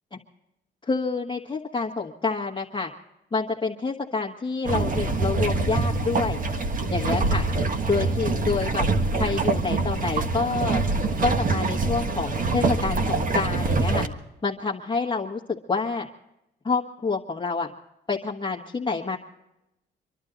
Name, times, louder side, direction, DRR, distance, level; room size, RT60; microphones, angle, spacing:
voice 1, 0.8-2.9 3.3-6.4 6.9-7.5 7.9-8.8 9.2-10.8 11.2-14.1 14.4-16.1 16.6-17.7 18.1-19.2, left 4 dB, 25° left, -3 dB, 1.5 m, -28 dB
sound 1, 4.6-14.1, right 3 dB, 45° right, 1.5 m, -25 dB
26.5 x 12.0 x 4.0 m, 0.90 s
cardioid pair, 90°, 20 cm